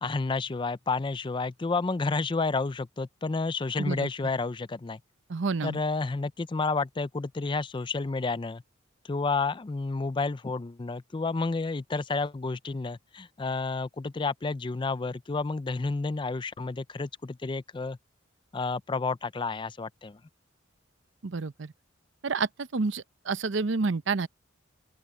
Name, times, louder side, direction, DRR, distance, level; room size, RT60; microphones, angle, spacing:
voice 1, 0.0-5.0 5.6-8.6 9.1-18.0 18.5-20.2, left 3 dB, 25° left, 0.4 m, -30 dB
voice 2, 3.8-4.1 5.3-5.8 21.2-21.7 22.2-24.3, right 4 dB, 65° right, 0.7 m, -29 dB
open air
head